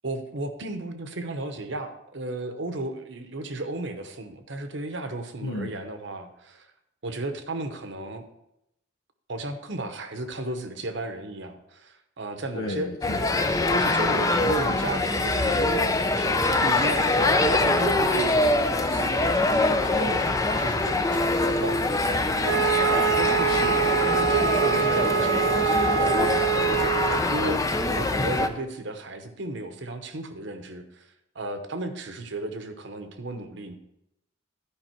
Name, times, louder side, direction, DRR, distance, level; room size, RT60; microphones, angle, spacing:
voice 1, 0.0-6.7 7.0-8.2 9.3-12.9 13.7-15.7 16.2-18.5 18.9-22.9 23.2-23.5 24.1-33.8, right 2 dB, 60° right, 8 dB, 0.9 m, -34 dB
voice 2, 5.4-5.8 12.5-13.7 23.5-24.0 28.1-28.3, left 1 dB, 80° left, 1 dB, 0.9 m, -35 dB
sound 1, 13.0-28.5, left 2 dB, 15° left, 0.4 m, -24 dB
Wind instrument woodwind instrument, 22.4-27.2, right 7 dB, 75° right, 0.5 m, -24 dB
12.0 x 5.3 x 4.5 m, 0.84 s
head